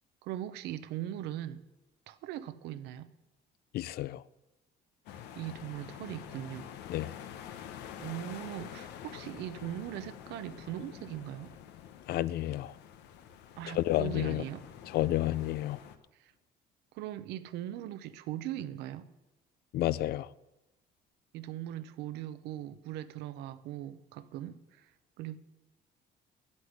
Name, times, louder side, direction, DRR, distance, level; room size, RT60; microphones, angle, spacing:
voice 1, 0.2-1.6 2.1-3.1 5.4-6.7 8.0-11.5 13.6-14.6 16.2-16.3 16.9-19.1 21.3-24.9 25.2-25.4, right 12 dB, 85° right, 0.8 m, -40 dB
voice 2, 3.7-4.2 6.9-7.1 12.1-12.7 13.7-14.4 14.9-15.8 19.7-20.3, left 14 dB, 70° left, 0.5 m, -30 dB
sound 1, 5.1-16.0, left 9 dB, 85° left, 1.0 m, -47 dB
10.0 x 8.5 x 9.6 m
cardioid pair, 110°, 17 cm